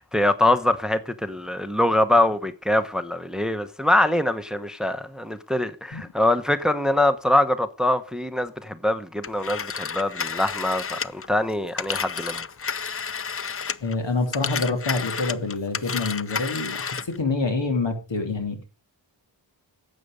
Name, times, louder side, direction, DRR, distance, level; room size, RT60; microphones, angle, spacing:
voice 1, 0.0-12.4, left 1 dB, ahead, 0.9 m, -23 dB
Telephone, 9.2-14.0 14.3-17.2, left 6 dB, 30° left, 0.5 m, -31 dB
voice 2, 13.8-18.6, left 3 dB, 75° left, 3.0 m, -26 dB
12.0 x 8.1 x 5.0 m
wide cardioid pair, 70°, 44 cm